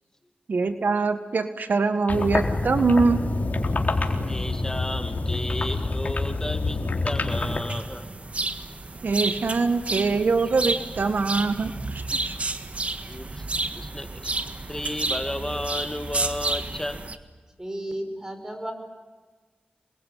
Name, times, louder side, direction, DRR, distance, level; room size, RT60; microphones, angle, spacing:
voice 1, 0.5-3.2 9.0-12.3, right 4 dB, 70° right, 9 dB, 1.7 m, -23 dB
sound 1, 2.1-7.6, left 3 dB, 55° left, 4.0 m, -27 dB
voice 2, 4.3-8.1 13.0-13.5 13.8-17.0, left 1 dB, 15° left, 7 dB, 2.3 m, -33 dB
sound 2, 7.3-17.2, right 3 dB, 45° right, 1.7 m, -31 dB
voice 3, 17.6-18.7, right 1 dB, 20° right, 7 dB, 5.4 m, -33 dB
27.5 x 22.0 x 9.5 m, 1.3 s
wide cardioid pair, 70°, 3 cm